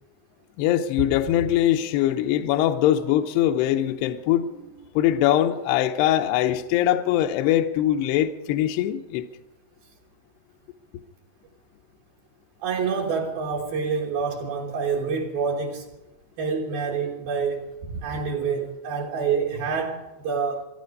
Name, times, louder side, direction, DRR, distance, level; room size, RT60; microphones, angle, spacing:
voice 1, 0.6-4.5 5.0-9.2, left 12 dB, 75° left, 2.5 m, -22 dB
voice 2, 12.6-15.8 16.4-20.7, right 5 dB, 65° right, 2.8 m, -27 dB
25.0 x 11.0 x 5.3 m
omnidirectional pair, 5.5 m